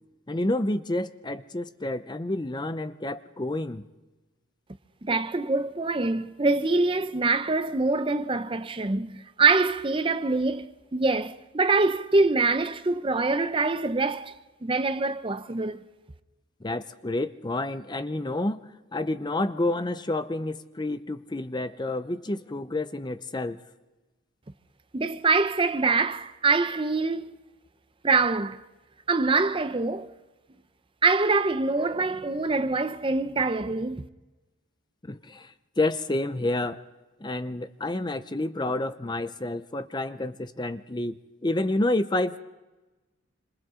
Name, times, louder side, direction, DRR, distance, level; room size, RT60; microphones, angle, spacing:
voice 1, 0.3-3.8 16.6-18.6 18.9-23.6 35.0-36.8 37.2-42.4, left 2 dB, 20° left, 0.6 m, -29 dB
voice 2, 5.0-14.3 14.6-15.8 24.9-27.3 28.0-28.6 29.1-30.1 31.0-34.1, right 3 dB, 25° right, 0.6 m, -24 dB
27.0 x 26.0 x 3.8 m
head